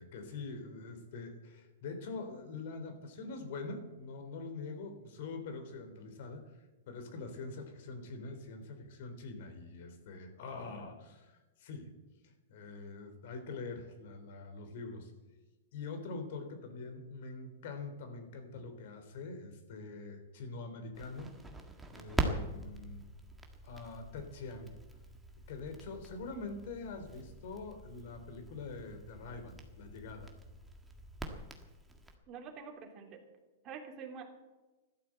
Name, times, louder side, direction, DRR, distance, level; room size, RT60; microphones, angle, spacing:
voice 1, 0.0-11.9 12.2-15.1 15.7-21.4 21.9-23.0 23.6-24.8 25.5-30.3, left 3 dB, 55° left, 7 dB, 3.5 m, -44 dB
Crackle, 20.9-32.1, right 2 dB, 5° right, 1.7 m, -43 dB
voice 2, 32.3-33.3 33.6-34.2, right 6 dB, 25° right, 1 dB, 3.1 m, -46 dB
15.0 x 12.5 x 7.8 m, 1.1 s
hypercardioid pair, 155°, 0 cm